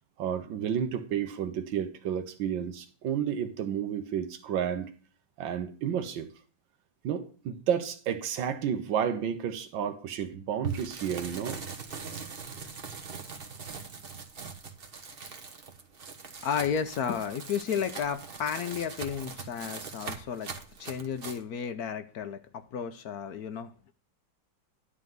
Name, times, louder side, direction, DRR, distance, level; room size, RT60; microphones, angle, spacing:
voice 1, 0.2-4.9 5.4-6.3 7.0-11.6, right 8 dB, 85° right, 1.7 m, -31 dB
sound 1, 10.6-21.4, right 5 dB, 35° right, 1.2 m, -41 dB
voice 2, 16.4-20.5 20.8-23.9, left 7 dB, 65° left, 1.0 m, -33 dB
11.5 x 3.8 x 7.7 m
omnidirectional pair, 2.0 m